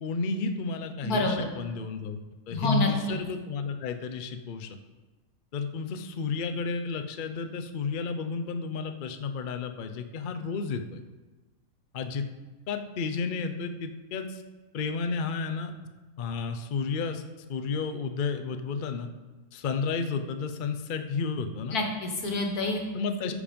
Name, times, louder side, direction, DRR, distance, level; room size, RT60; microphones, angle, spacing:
voice 1, 0.0-2.2 2.5-4.8 5.5-11.0 11.9-12.3 12.7-14.4 14.7-15.7 16.2-17.2 17.5-19.1 19.5-21.8 22.9-23.3, left 5 dB, 50° left, 7 dB, 0.6 m, -32 dB
voice 2, 1.0-1.5 2.5-3.2 21.7-22.8 23.3-23.4, left 1 dB, 85° left, 3 dB, 1.9 m, -28 dB
13.5 x 5.1 x 5.2 m, 1.2 s
omnidirectional pair, 1.6 m